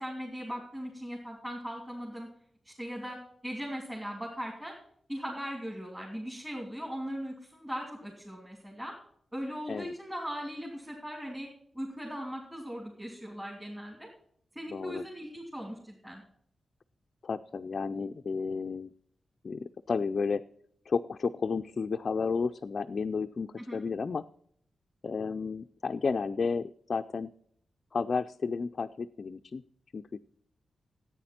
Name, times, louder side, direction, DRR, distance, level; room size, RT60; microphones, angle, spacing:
voice 1, 0.0-2.3 2.6-3.2 3.4-4.7 5.1-8.9 9.3-11.5 11.7-14.1 14.5-16.2 23.6-23.8, equal, 10° right, -2 dB, 2.9 m, -39 dB
voice 2, 14.7-15.0 17.2-18.9 19.4-20.4 20.9-24.2 25.0-27.3 27.9-29.6 29.9-30.0, left 5 dB, 40° left, 5 dB, 0.4 m, -32 dB
14.5 x 9.2 x 4.3 m, 0.65 s
wide cardioid pair, 175°, 0 cm